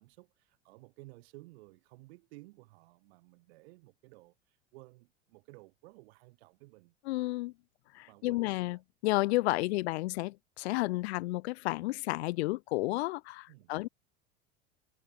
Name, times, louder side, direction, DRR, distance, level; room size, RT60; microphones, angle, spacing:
voice 1, 0.0-7.0 8.1-8.7 13.5-13.7, right 22 dB, 70° right, 3.6 m, -55 dB
voice 2, 7.1-7.5 7.9-8.8 9.0-13.9, left 20 dB, 70° left, 0.5 m, -31 dB
hypercardioid pair, 80°, 33 cm